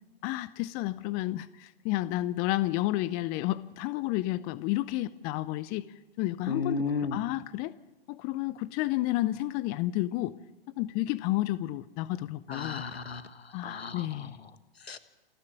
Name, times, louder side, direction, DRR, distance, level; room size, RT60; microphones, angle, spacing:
voice 1, 0.2-5.8 6.2-6.9 7.1-7.7 8.1-10.4 10.8-12.8 13.5-14.4, left 16 dB, 30° left, 18 dB, 0.6 m, -31 dB
voice 2, 6.5-7.2 12.5-14.3 14.9-15.0, left 4 dB, 85° left, 12 dB, 1.5 m, -34 dB
28.5 x 10.5 x 8.7 m, 1.0 s
figure-of-eight pair, 110°, 30 cm